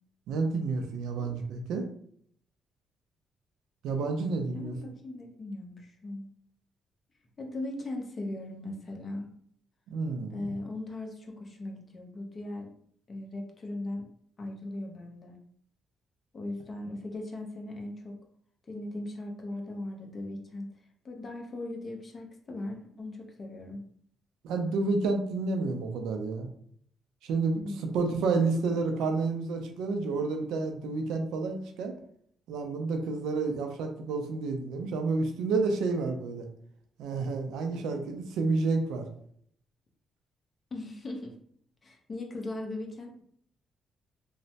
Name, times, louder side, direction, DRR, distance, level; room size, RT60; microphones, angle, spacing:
voice 1, 0.3-1.8 3.8-4.9 9.9-10.5 24.4-26.5 27.2-27.6 27.9-31.9 32.5-36.5 37.0-39.1, right 3 dB, 85° right, 5 dB, 0.4 m, -30 dB
voice 2, 4.5-6.3 7.4-9.3 10.3-12.7 13.1-14.1 14.4-15.4 16.3-18.2 18.7-20.7 21.0-23.8 27.6-28.0 28.7-28.9 40.7-41.4 41.8-43.2, left 2 dB, 40° left, 2 dB, 0.7 m, -39 dB
3.1 x 2.0 x 2.7 m, 0.64 s
cardioid pair, 90°, 0 cm